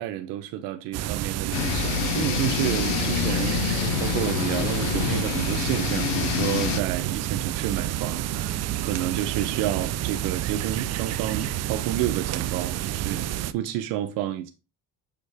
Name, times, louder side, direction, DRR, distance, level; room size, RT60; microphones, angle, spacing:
voice 1, 0.0-3.6 4.0-14.5, right 12 dB, 85° right, 0.8 m, -30 dB
sound 1, 0.9-13.5, right 13 dB, 55° right, 0.5 m, -29 dB
sound 2, 1.5-6.8, left 11 dB, 90° left, 0.7 m, -27 dB
7.0 x 5.2 x 3.4 m
cardioid pair, 115°, 32 cm